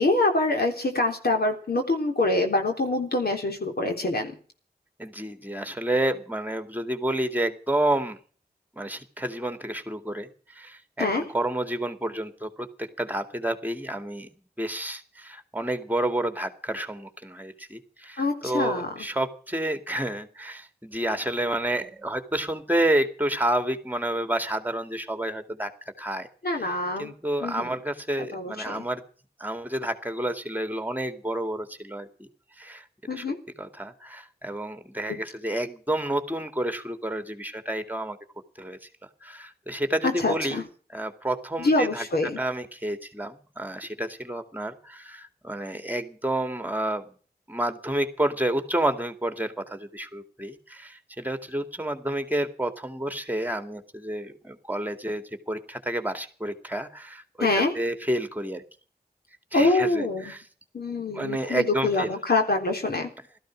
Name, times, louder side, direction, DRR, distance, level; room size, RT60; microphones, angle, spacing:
voice 1, 0.0-4.4 11.0-11.2 18.2-19.1 26.4-27.1 27.4-27.7 28.3-28.9 33.1-33.4 40.0-40.6 41.6-42.4 57.4-57.7 59.5-60.3 60.7-63.1, left 2 dB, 80° left, 3 dB, 3.7 m, -25 dB
voice 2, 5.0-8.2 8.8-12.7 13.0-14.3 14.6-25.7 26.0-26.7 27.0-29.0 29.4-32.3 32.6-32.8 33.1-33.2 33.6-38.2 38.6-38.8 39.2-40.6 40.9-47.0 47.5-58.6 59.5-60.4 61.1-62.2, right 1 dB, 10° right, 8 dB, 2.3 m, -30 dB
16.5 x 14.0 x 6.3 m, 0.41 s
wide cardioid pair, 60°, 16 cm